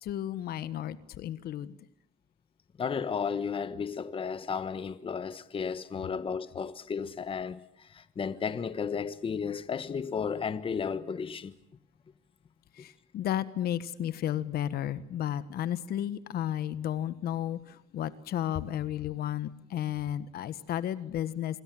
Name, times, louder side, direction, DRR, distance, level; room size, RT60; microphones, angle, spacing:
voice 1, 0.0-1.8 12.7-21.6, left 11 dB, 65° left, 1.4 m, -33 dB
voice 2, 2.8-11.5, left 6 dB, 30° left, 1.2 m, -33 dB
27.0 x 22.5 x 7.7 m
cardioid pair, 110°, 17 cm